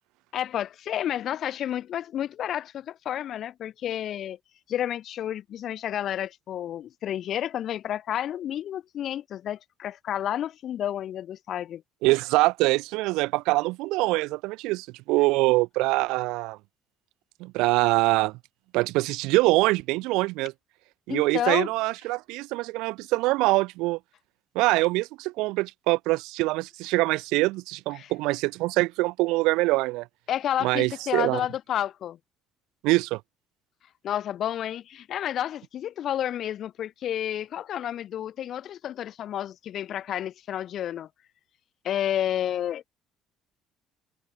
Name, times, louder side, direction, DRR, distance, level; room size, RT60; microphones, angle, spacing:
voice 1, 0.3-4.4 4.7-11.8 21.1-21.7 28.0-28.1 30.3-32.2 34.0-41.1 41.8-42.9, left 11 dB, 45° left, 1.6 m, -30 dB
voice 2, 12.0-16.6 17.4-18.4 18.7-20.5 21.1-24.0 24.5-30.1 30.6-31.4 32.8-33.2, right 22 dB, 85° right, 1.0 m, -24 dB
cardioid pair, 150°, 0 cm